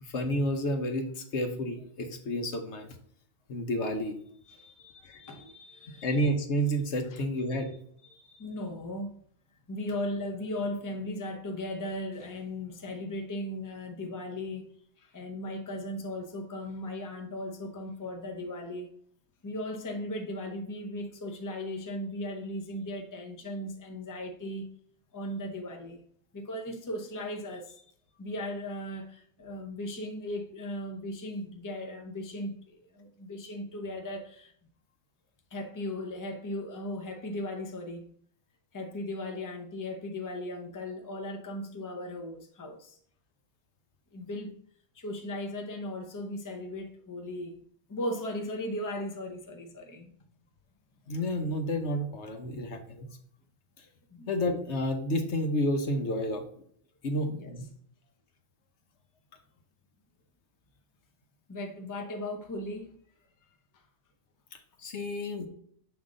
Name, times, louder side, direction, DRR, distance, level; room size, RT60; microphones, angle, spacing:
voice 1, 0.0-3.0 3.5-4.2 5.0-5.2 6.0-7.7 51.1-53.1 54.3-56.4 57.0-57.6 64.8-65.5, equal, 60° left, 1.1 m, -30 dB
voice 2, 4.5-6.3 7.1-7.2 8.1-9.2 9.7-14.7 15.0-18.9 19.4-24.7 25.1-26.0 26.3-27.8 28.2-34.5 35.5-38.0 38.7-43.0 44.1-44.6 44.9-47.6 47.9-50.1 54.1-54.3 57.2-57.6 61.5-62.9, left 1 dB, 20° left, 0.6 m, -37 dB
7.0 x 3.8 x 3.7 m
omnidirectional pair, 1.3 m